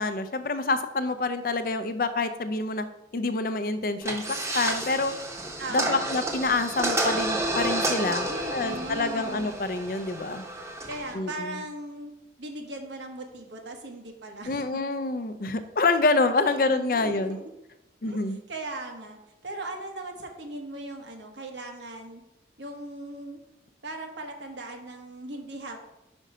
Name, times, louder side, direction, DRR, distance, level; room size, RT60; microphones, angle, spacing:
voice 1, 0.0-2.8 3.1-4.2 4.5-5.2 5.7-10.4 11.1-11.6 14.5-17.4 18.0-18.4, left 3 dB, 50° left, 10 dB, 0.5 m, -27 dB
sound 1, 4.0-11.1, right 1 dB, 15° right, 0.8 m, -30 dB
voice 2, 5.6-6.1 8.3-9.5 10.9-12.1 12.4-14.8 16.4-17.5 18.0-22.2 22.6-23.4 23.8-25.8, right 2 dB, 85° right, 3 dB, 1.2 m, -38 dB
5.5 x 5.2 x 5.0 m, 0.92 s
head